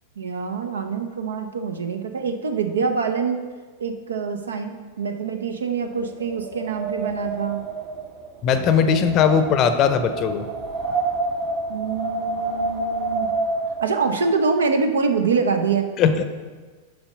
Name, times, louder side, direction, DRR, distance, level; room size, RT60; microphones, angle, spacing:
voice 1, 0.2-3.4 3.8-7.6 8.6-8.7 11.7-13.3 13.8-15.8, right 5 dB, 70° right, 7 dB, 0.7 m, -25 dB
Wind, 5.9-13.9, right 3 dB, 35° right, 2.6 m, -28 dB
voice 2, 8.4-10.4 16.0-16.2, left 7 dB, 35° left, 9 dB, 0.6 m, -19 dB
7.0 x 5.5 x 5.2 m, 1.4 s
figure-of-eight pair, 90°, 0 cm